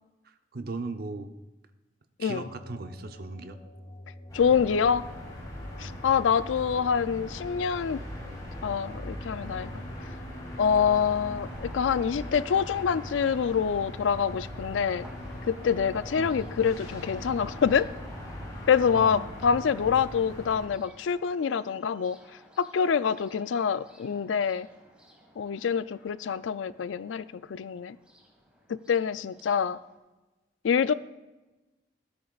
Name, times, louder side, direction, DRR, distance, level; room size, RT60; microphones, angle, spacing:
voice 1, 0.2-1.3 2.2-3.6 5.8-6.0 16.1-16.4 18.9-19.2, right 3 dB, 55° right, 8 dB, 0.6 m, -38 dB
sound 1, 2.3-20.0, left 1 dB, 40° left, 1.0 m, -46 dB
voice 2, 4.3-5.1 5.8-8.0 8.6-9.7 10.6-15.1 15.5-17.9 18.7-22.2 22.6-24.7 25.4-27.2 27.5-28.0 28.7-29.8 30.6-30.9, left 7 dB, 90° left, 16 dB, 0.4 m, -26 dB
sound 2, 4.3-20.7, equal, 20° left, 3.8 m, -41 dB
sound 3, 10.6-29.9, equal, 5° right, 1.6 m, -53 dB
14.0 x 12.5 x 2.4 m, 1.1 s
head